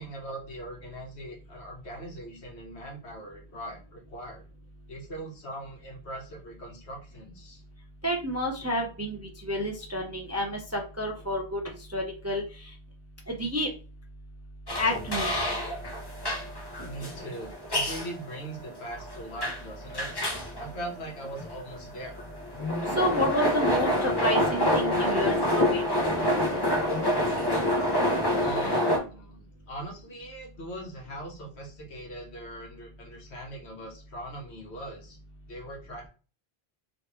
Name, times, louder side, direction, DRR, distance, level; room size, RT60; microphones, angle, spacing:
voice 1, 0.0-4.4 4.9-7.6 16.4-16.5 16.7-20.1 20.6-22.2 28.4-35.2 35.5-36.1, right 1 dB, 80° left, 0 dB, 1.4 m, -41 dB
voice 2, 8.0-11.6 11.9-12.4 13.3-13.7 14.8-15.6 23.0-25.8, equal, 20° right, 1 dB, 0.4 m, -30 dB
sound 1, 14.7-29.0, left 1 dB, 25° left, 0.8 m, -27 dB
3.1 x 3.1 x 3.0 m, 0.36 s
omnidirectional pair, 1.1 m